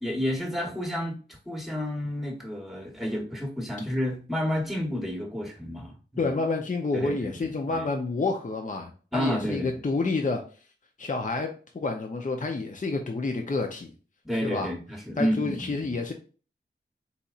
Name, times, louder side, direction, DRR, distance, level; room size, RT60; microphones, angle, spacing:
voice 1, 0.0-1.2 1.5-6.3 6.9-7.9 9.1-9.7 14.2-16.0, equal, ahead, 1.1 m, -30 dB
voice 2, 6.2-10.4 11.0-13.9 14.4-14.7 15.2-16.1, left 3 dB, 45° left, 0.6 m, -29 dB
4.1 x 4.1 x 2.4 m
wide cardioid pair, 75°, 19 cm